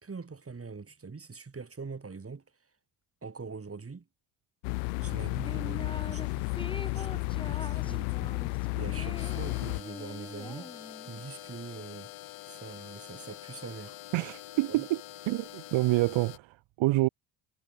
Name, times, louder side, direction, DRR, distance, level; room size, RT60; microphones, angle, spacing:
voice 1, 0.0-2.4 3.2-4.1 5.0-6.6 6.9-8.4 8.7-10.7 11.1-12.1 12.4-14.0 14.7-14.8, right 4 dB, 25° right, 4.6 m, -43 dB
sound 1, 4.6-9.8, left 36 dB, 85° left, 0.7 m, -32 dB
Female Voc txt You know the people just from the screen, 5.4-6.3 6.6-11.2, left 2 dB, 10° left, 3.8 m, -44 dB
sound 2, 9.2-16.4, left 14 dB, 65° left, 5.0 m, -46 dB
voice 2, 14.1-15.0 15.3-17.1, right 19 dB, 65° right, 1.0 m, -27 dB
supercardioid pair, 65°, 50 cm